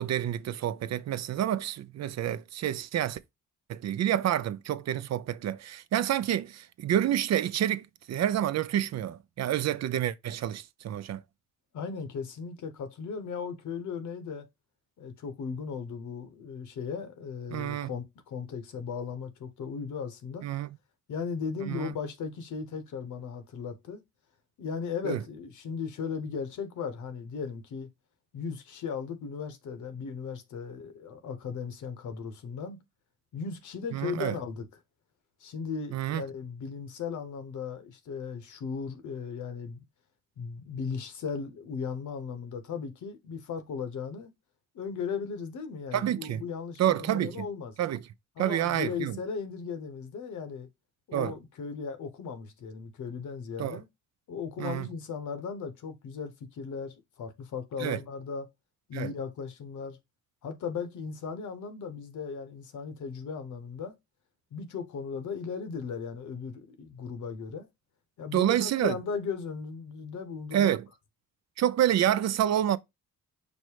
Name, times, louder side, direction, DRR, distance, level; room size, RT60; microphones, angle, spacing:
voice 1, 0.0-3.2 3.7-11.2 17.5-17.9 20.4-20.7 21.7-21.9 25.0-25.2 33.9-34.4 35.9-36.2 45.9-46.4 46.8-47.5 47.8-48.0 48.4-49.2 51.1-51.3 53.6-53.8 54.6-54.9 57.8-58.0 58.9-59.1 68.3-69.0 70.5-70.9 71.6-72.8, right 11 dB, 60° right, 0.5 m, -28 dB
voice 2, 11.7-14.5 15.0-20.4 21.1-24.0 24.6-27.9 28.3-32.8 33.3-34.7 35.4-39.8 40.4-44.3 44.7-47.7 48.4-50.7 51.1-53.8 54.3-58.5 58.9-60.0 60.4-63.9 64.5-67.7 68.2-70.7, left 5 dB, 80° left, 1.0 m, -37 dB
5.3 x 2.1 x 4.6 m
cardioid pair, 90°, 30 cm